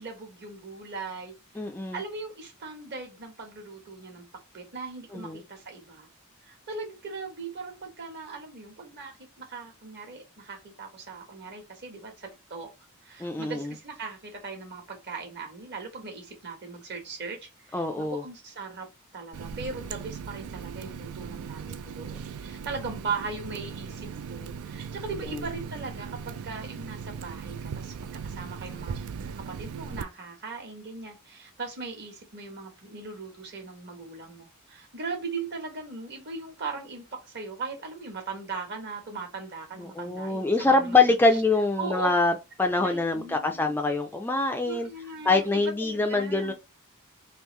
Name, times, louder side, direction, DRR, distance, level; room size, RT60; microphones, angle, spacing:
voice 1, 0.0-1.3 1.9-4.2 4.5-6.1 6.4-12.7 13.0-27.9 28.2-41.0 41.3-41.4 41.8-42.1 42.8-43.7 44.6-46.5, right 4 dB, 50° right, 1.3 m, -39 dB
voice 2, 1.6-2.0 5.1-5.4 13.2-13.7 17.7-18.2 25.3-25.4 39.8-42.3 42.6-44.9 45.2-46.5, left 3 dB, 10° left, 0.4 m, -24 dB
Water tap faucet, 19.3-30.0, right 6 dB, 75° right, 0.4 m, -38 dB
3.5 x 2.6 x 3.1 m
head